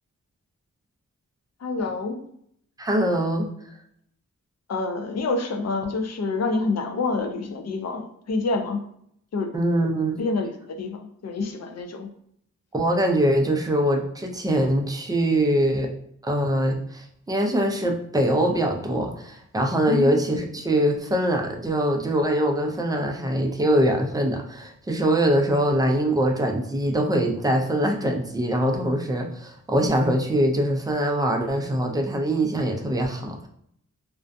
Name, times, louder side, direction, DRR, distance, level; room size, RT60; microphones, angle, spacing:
voice 1, 1.6-2.2 4.7-8.8 9.3-9.5 10.2-12.1 19.9-20.1, left 3 dB, 55° left, 4 dB, 0.5 m, -27 dB
voice 2, 2.8-3.5 9.5-10.3 12.7-15.9 16.2-33.5, right 1 dB, 10° right, 2 dB, 0.4 m, -23 dB
2.4 x 2.2 x 2.5 m, 0.69 s
wide cardioid pair, 105°, 32 cm